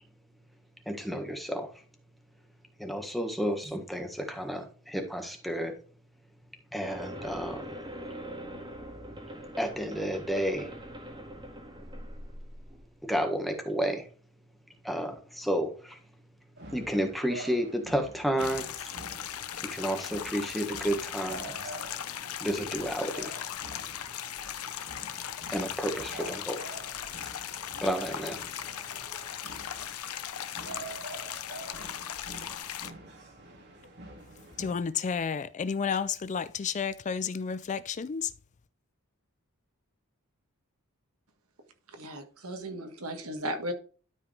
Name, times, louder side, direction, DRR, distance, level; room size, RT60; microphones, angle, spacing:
voice 1, 0.8-1.8 2.4-2.5 2.7-5.8 6.7-7.9 9.6-10.7 13.0-14.1 14.7-18.9 19.6-23.7 24.9-25.0 25.5-28.4, equal, ahead, 1.5 m, -32 dB
sound 1, 6.8-12.9, equal, 20° right, 1.8 m, -42 dB
sound 2, 16.6-34.8, right 2 dB, 50° right, 2.4 m, -47 dB
sound 3, 18.4-32.9, left 10 dB, 75° left, 0.7 m, -38 dB
voice 2, 34.6-38.3, left 6 dB, 35° left, 0.4 m, -31 dB
voice 3, 42.0-43.7, equal, 70° right, 1.7 m, -36 dB
12.5 x 4.9 x 3.3 m
head